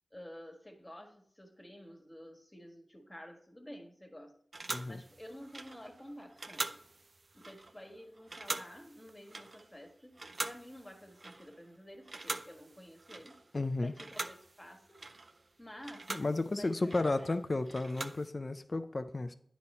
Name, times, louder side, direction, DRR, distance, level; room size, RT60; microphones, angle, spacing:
voice 1, 0.1-4.4 4.8-6.8 7.3-13.4 13.8-15.0 15.6-16.2 16.5-17.6, equal, 20° left, 3 dB, 1.6 m, -51 dB
sound 1, 4.5-11.7 12.0-13.6 13.9-18.3, right 3 dB, 55° right, 0.5 m, -44 dB
voice 2, 13.5-13.9 16.1-19.3, left 2 dB, 50° left, 10 dB, 0.5 m, -33 dB
9.7 x 4.2 x 4.3 m, 0.65 s
cardioid pair, 45°, 0 cm